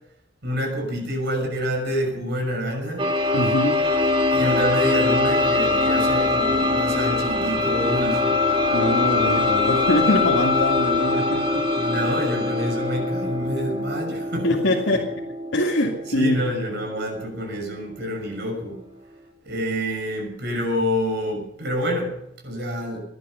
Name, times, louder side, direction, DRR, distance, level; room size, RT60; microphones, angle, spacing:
voice 1, 0.4-3.1 4.3-8.4 11.8-14.5 14.9-15.0 16.1-18.8 19.4-22.2 22.4-23.0, equal, 60° right, 1 dB, 6.4 m, -27 dB
sound 1, 3.0-18.6, left 2 dB, 30° right, 2.4 m, -23 dB
voice 2, 3.3-3.8 8.7-11.7 14.4-15.3 15.5-16.4, left 1 dB, 75° left, -2 dB, 2.3 m, -23 dB
20.5 x 12.0 x 5.8 m, 0.79 s
head